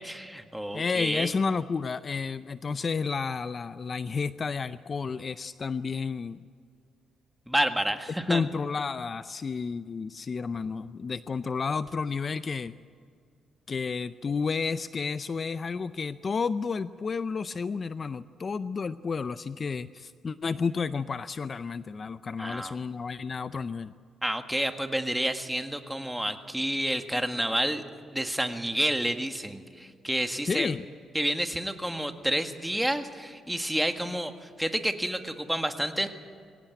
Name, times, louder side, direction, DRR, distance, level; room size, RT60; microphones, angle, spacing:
voice 1, 0.0-1.3 7.5-8.4 22.4-22.8 24.2-27.8 28.1-30.7 31.1-36.1, right 1 dB, 5° right, 6 dB, 1.8 m, -29 dB
voice 2, 0.7-6.4 8.3-12.7 13.7-23.9 30.4-30.8, left 5 dB, 40° left, 13 dB, 0.5 m, -31 dB
23.0 x 18.0 x 9.2 m, 2.2 s
cardioid pair, 90°, 0 cm